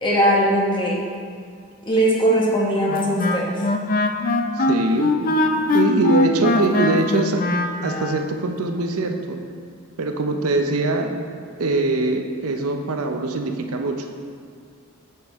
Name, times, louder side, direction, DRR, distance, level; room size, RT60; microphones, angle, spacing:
voice 1, 0.0-1.0 1.9-3.6 5.5-5.7, right 1 dB, 20° left, -4 dB, 1.2 m, -20 dB
Wind instrument woodwind instrument, 2.9-8.2, left 2 dB, 40° left, 0.5 m, -21 dB
voice 2, 4.6-5.2 5.7-7.4 7.8-9.4 10.0-11.1 11.6-14.1, right 2 dB, 75° right, 4 dB, 0.6 m, -22 dB
8.3 x 6.0 x 3.6 m, 2.1 s
head